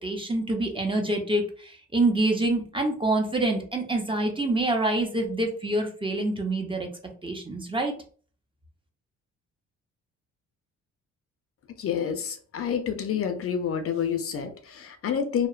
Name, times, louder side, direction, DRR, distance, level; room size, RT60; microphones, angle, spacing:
voice 1, 0.0-6.9 7.2-7.9, right 2 dB, 15° right, 2 dB, 0.6 m, -26 dB
voice 2, 11.8-15.5, left 7 dB, 50° left, 7 dB, 0.5 m, -28 dB
2.8 x 2.0 x 2.4 m, 0.42 s
cardioid pair, 90°, 30 cm